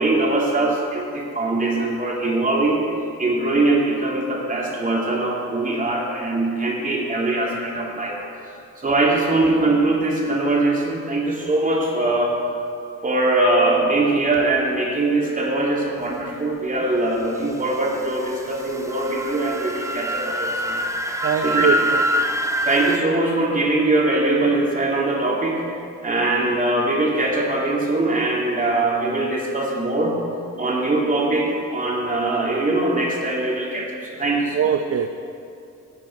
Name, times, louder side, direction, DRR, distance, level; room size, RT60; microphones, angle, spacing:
voice 1, 0.0-2.8 3.2-8.2 8.4-12.4 13.0-20.8 21.4-21.8 22.6-25.6 26.0-30.2 30.6-34.6, right 2 dB, 25° right, -2 dB, 2.8 m, -22 dB
sound 1, 17.9-23.0, equal, 10° right, 0.9 m, -25 dB
voice 2, 21.2-22.3 34.5-35.2, right 7 dB, 50° right, 7 dB, 0.7 m, -23 dB
15.5 x 9.1 x 4.7 m, 2.5 s
cardioid pair, 90°, 30 cm